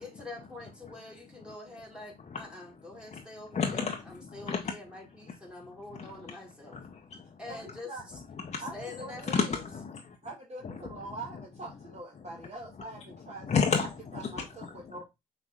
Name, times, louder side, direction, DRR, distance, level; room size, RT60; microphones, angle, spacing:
voice 1, 0.0-6.8 7.4-7.9 8.7-9.6, left 2 dB, 5° right, 1.9 m, -45 dB
voice 2, 3.5-4.7 5.9-6.1 6.7-7.3 8.4-8.6 9.3-10.2 10.6-10.7 13.5-13.9 14.4-14.5, left 5 dB, 35° left, 0.7 m, -31 dB
voice 3, 7.5-8.0 8.6-9.4 10.2-15.0, right 2 dB, 35° right, 1.2 m, -43 dB
6.0 x 3.2 x 2.4 m
hypercardioid pair, 50°, 19 cm